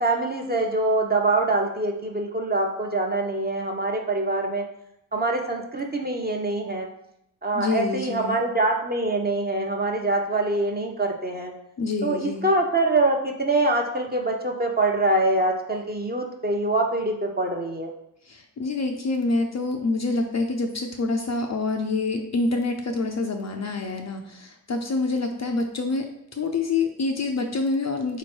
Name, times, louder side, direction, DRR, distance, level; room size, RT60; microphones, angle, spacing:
voice 1, 0.0-4.6 5.1-6.9 7.4-11.5 12.0-17.9, right 2 dB, 20° right, 1 dB, 0.8 m, -24 dB
voice 2, 7.5-8.4 11.8-12.5 18.3-28.2, left 3 dB, 35° left, 4 dB, 0.5 m, -27 dB
3.7 x 3.1 x 4.4 m, 0.79 s
cardioid pair, 55°, 46 cm